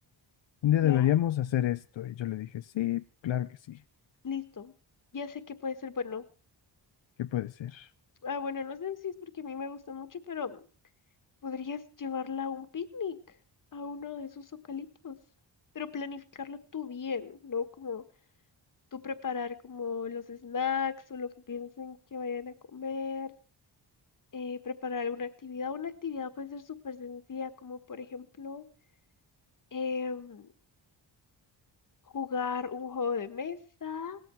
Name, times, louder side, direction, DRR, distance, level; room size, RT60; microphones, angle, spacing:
voice 1, 0.6-3.8 7.2-7.9, left 12 dB, 75° left, 0.7 m, -28 dB
voice 2, 4.2-4.7 5.1-6.2 8.2-10.6 11.4-13.2 13.7-15.2 15.7-18.0 18.9-23.3 24.3-28.6 29.7-30.5 32.1-34.2, left 6 dB, 45° left, 1.6 m, -36 dB
18.5 x 14.0 x 4.5 m
wide cardioid pair, 135°, 45 cm